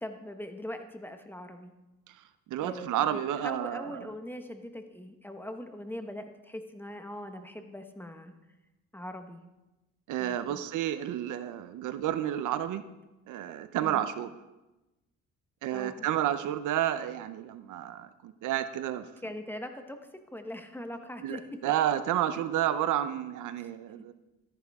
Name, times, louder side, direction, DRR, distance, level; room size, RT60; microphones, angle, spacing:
voice 1, 0.0-1.7 2.6-8.3 8.9-9.4 10.2-10.6 13.8-14.0 15.7-16.0 19.2-20.0 20.3-21.4 23.6-23.7, left 1 dB, 5° left, 6 dB, 1.2 m, -41 dB
voice 2, 2.1-4.1 10.1-12.8 13.3-14.3 15.6-19.1 21.2-24.1, right 11 dB, 80° right, 12 dB, 0.7 m, -31 dB
13.5 x 10.5 x 3.6 m, 1.0 s
cardioid pair, 90°, 30 cm